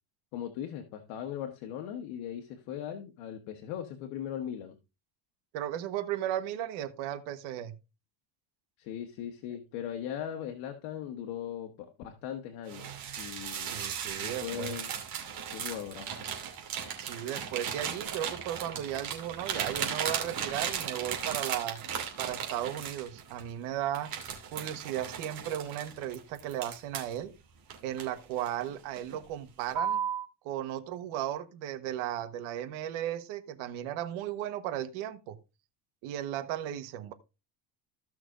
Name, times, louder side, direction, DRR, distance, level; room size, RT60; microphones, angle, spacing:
voice 1, 0.3-4.7 8.8-12.9 13.2-13.8 14.2-14.9 15.5-16.2, left 10 dB, 75° left, 1.5 m, -39 dB
voice 2, 5.5-7.7 13.7-14.8 17.0-21.8 22.2-24.1 24.5-27.3 27.8-30.0 30.4-35.4 36.0-37.1, right 11 dB, 75° right, 1.3 m, -35 dB
sound 1, 12.7-23.5 23.9-27.2 27.7-28.6 29.0-29.2 29.7-30.3, right 8 dB, 45° right, 2.7 m, -36 dB
15.5 x 6.0 x 2.5 m
cardioid pair, 135°, 50 cm